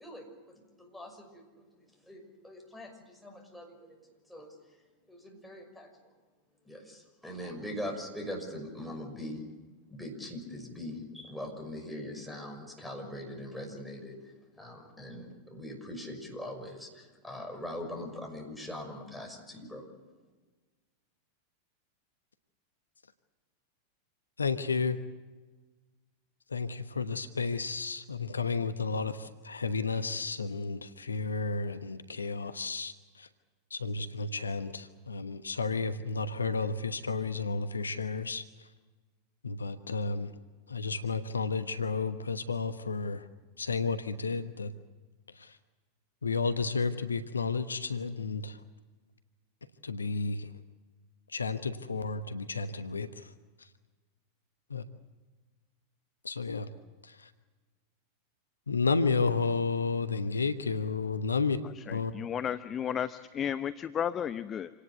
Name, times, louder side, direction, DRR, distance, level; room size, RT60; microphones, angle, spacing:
voice 1, 0.0-1.4 1.7-4.0 4.3-4.5 5.1-5.9 6.6-9.4 9.9-19.8, left 1 dB, ahead, 6.2 m, -42 dB
voice 2, 24.4-25.0 26.5-33.3 33.7-38.4 39.4-40.3 40.7-43.2 43.6-44.7 45.4-45.6 46.2-48.6 49.8-50.5 51.3-53.3 54.7-54.8 56.2-56.7 57.0-57.3 58.7-61.6 61.9-62.1, left 4 dB, 75° left, 1.1 m, -32 dB
voice 3, 61.8-64.7, left 9 dB, 25° left, 0.7 m, -33 dB
27.0 x 18.5 x 8.3 m
figure-of-eight pair, 90°, 0 cm